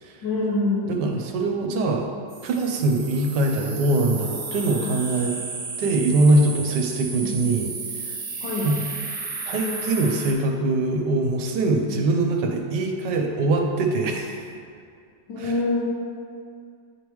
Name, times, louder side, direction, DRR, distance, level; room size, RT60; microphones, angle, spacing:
voice 1, 0.2-1.0 7.2-7.3 8.4-8.7 15.3-15.9, left 2 dB, 85° left, -6 dB, 1.5 m, -25 dB
voice 2, 0.9-2.1 2.4-5.4 5.8-8.2 8.6-8.8 9.5-14.5 15.4-15.5, right 2 dB, 75° right, 2 dB, 1.3 m, -23 dB
sound 1, 2.3-10.3, right 4 dB, 55° right, 0.8 m, -33 dB
9.5 x 3.5 x 3.0 m, 2.2 s
omnidirectional pair, 1.9 m